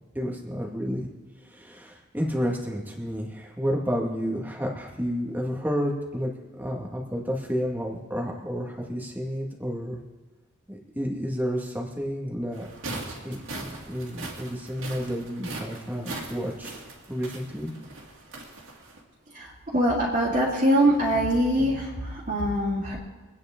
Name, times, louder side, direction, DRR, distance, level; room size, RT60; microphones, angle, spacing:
voice 1, 0.1-1.1 1.5-6.3 6.6-10.0 10.7-12.7 13.2-16.7 17.1-17.7, equal, 10° right, -1 dB, 1.9 m, -30 dB
sound 1, 12.5-19.0, right 2 dB, 65° right, 2.6 m, -40 dB
voice 2, 19.3-23.0, equal, 35° right, -8 dB, 2.7 m, -23 dB
24.5 x 9.7 x 3.8 m, 1.2 s
head